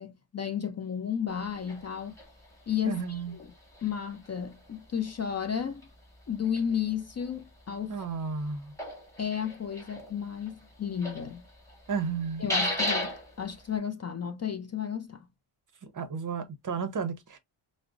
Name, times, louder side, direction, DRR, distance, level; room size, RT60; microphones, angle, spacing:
voice 1, 0.0-2.2 2.7-3.5 3.8-5.9 6.3-8.0 9.2-11.4 12.4-15.3, left 8 dB, 35° left, 0.4 m, -33 dB
sound 1, 1.3-13.8, left 1 dB, 5° left, 1.7 m, -38 dB
voice 2, 2.9-3.4 7.9-8.7 11.9-12.4 15.8-17.4, right 5 dB, 40° right, 0.6 m, -33 dB
4.8 x 2.0 x 2.3 m
wide cardioid pair, 125°, 50 cm